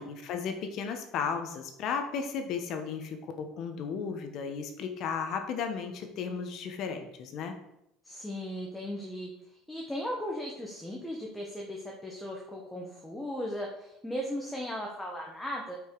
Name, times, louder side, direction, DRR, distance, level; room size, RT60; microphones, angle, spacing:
voice 1, 0.0-7.6, left 6 dB, 50° left, 6 dB, 1.2 m, -34 dB
voice 2, 8.0-9.3 9.7-15.8, equal, 5° left, -1 dB, 1.2 m, -37 dB
8.9 x 5.4 x 4.7 m, 0.81 s
cardioid pair, 155°, 0 cm